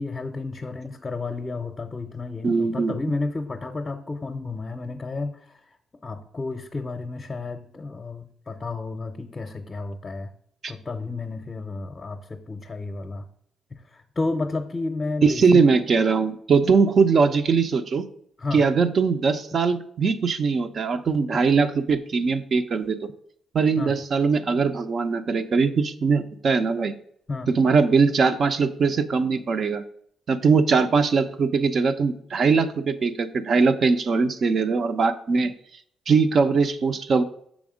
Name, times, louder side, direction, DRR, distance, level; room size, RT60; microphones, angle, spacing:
voice 1, 0.0-5.6 6.0-10.3 10.7-13.2 13.9-15.6 18.4-18.7 23.8-24.0 27.3-27.5, left 3 dB, 25° left, 5 dB, 0.6 m, -31 dB
voice 2, 2.4-3.0 10.6-10.7 15.2-18.1 18.5-23.1 23.5-26.9 27.5-29.8 30.3-35.5 36.1-37.2, right 5 dB, 55° right, 9 dB, 0.5 m, -21 dB
6.2 x 3.5 x 4.9 m, 0.67 s
cardioid pair, 85°, 0 cm